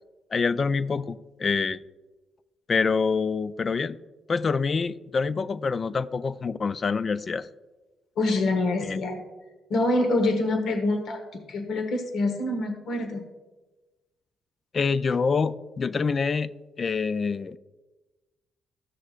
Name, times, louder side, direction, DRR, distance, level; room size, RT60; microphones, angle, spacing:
voice 1, 0.3-1.8 2.7-4.0 4.3-7.5 8.8-9.0 14.7-16.5 16.8-17.6, left 5 dB, 40° left, 15 dB, 0.3 m, -26 dB
voice 2, 8.2-9.2 9.7-13.3, left 2 dB, 70° left, 4 dB, 1.1 m, -26 dB
15.0 x 6.3 x 2.4 m, 1.2 s
cardioid pair, 90°, 0 cm